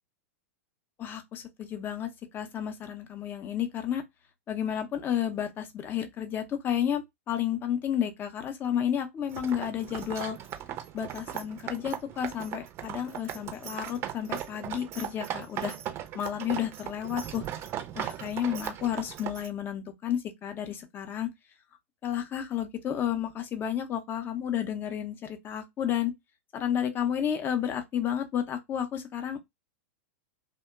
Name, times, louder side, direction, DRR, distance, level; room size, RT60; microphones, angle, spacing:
voice 1, 1.0-4.0 4.5-10.4 10.9-15.8 16.1-17.4 17.9-21.3 22.0-26.1 26.5-29.4, left 9 dB, 25° left, 0.5 m, -31 dB
sound 1, 9.3-19.5, right 11 dB, 35° right, 0.5 m, -38 dB
2.7 x 2.1 x 2.2 m
figure-of-eight pair, 95°, 8 cm